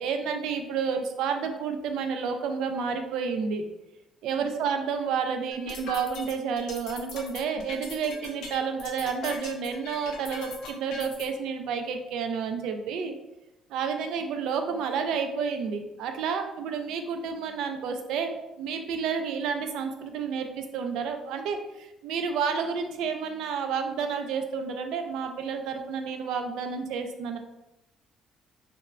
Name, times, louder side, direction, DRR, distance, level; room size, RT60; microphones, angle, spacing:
voice 1, 0.0-3.7 4.2-13.1 13.7-27.4, right 6 dB, 80° right, 6 dB, 0.3 m, -30 dB
sound 1, 5.5-11.3, left 4 dB, 70° left, 0.5 m, -40 dB
3.2 x 2.1 x 2.3 m, 0.92 s
cardioid pair, 145°, 0 cm